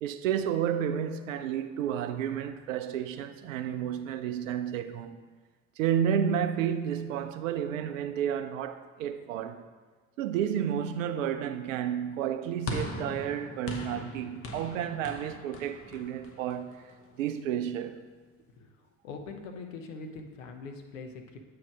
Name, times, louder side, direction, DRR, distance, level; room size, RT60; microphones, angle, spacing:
voice 1, 0.0-5.2 5.8-9.6 10.2-16.8 17.2-18.1, right 9 dB, 70° right, 0.5 m, -31 dB
sound 1, 12.7-17.1, left 2 dB, 35° left, 0.9 m, -39 dB
voice 2, 19.0-21.4, left 4 dB, 70° left, 0.8 m, -42 dB
8.7 x 3.2 x 4.6 m
figure-of-eight pair, 55°, 40 cm